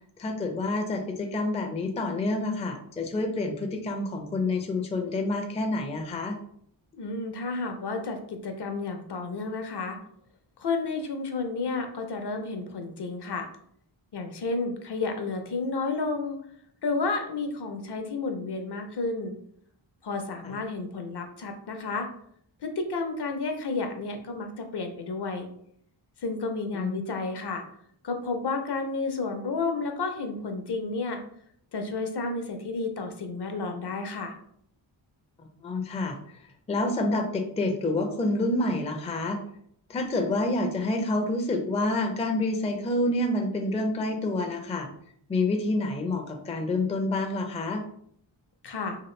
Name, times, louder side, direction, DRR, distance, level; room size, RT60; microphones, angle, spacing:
voice 1, 0.2-6.4 20.4-20.5 26.7-27.0 35.6-36.4 36.7-39.4 39.9-44.9 45.3-47.8, left 2 dB, 15° left, 3 dB, 0.4 m, -28 dB
voice 2, 7.0-10.0 10.6-13.5 14.1-16.4 16.8-19.3 20.0-22.1 22.6-25.5 26.2-27.6 28.0-31.2 31.7-34.4 48.6-49.0, left 3 dB, 55° left, 5 dB, 0.6 m, -31 dB
2.9 x 2.4 x 3.1 m, 0.67 s
wide cardioid pair, 75°, 47 cm